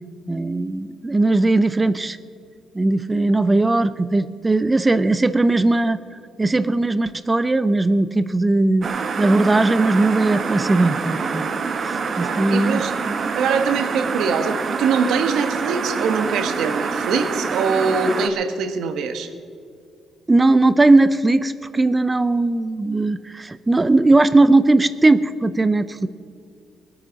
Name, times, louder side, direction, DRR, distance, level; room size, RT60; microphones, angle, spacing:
voice 1, 0.3-2.2 2.7-6.0 6.4-8.9 9.2-11.4 11.8-13.2 20.3-26.1, right 2 dB, 20° right, 14 dB, 0.5 m, -18 dB
sound 1, 8.8-18.3, right 5 dB, 50° right, 1.2 m, -26 dB
voice 2, 12.2-12.9 13.3-19.3, right 5 dB, 80° right, 8 dB, 1.3 m, -23 dB
19.5 x 8.8 x 6.3 m, 2.3 s
cardioid pair, 90°, 0 cm